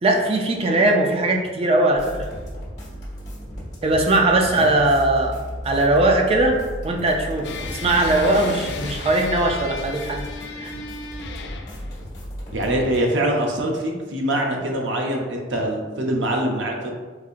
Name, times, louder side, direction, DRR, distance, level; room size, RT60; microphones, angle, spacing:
voice 1, 0.0-2.3 3.8-6.6 6.8-10.2 10.6-10.7, right 2 dB, 30° right, 1 dB, 0.4 m, -20 dB
sound 1, 1.9-13.0, equal, 40° left, 1.1 m, -35 dB
sound 2, 7.4-11.9, left 4 dB, 65° left, 0.3 m, -34 dB
voice 2, 12.5-16.9, right 1 dB, 70° right, 0 dB, 0.6 m, -24 dB
4.1 x 2.7 x 2.4 m, 1.4 s
head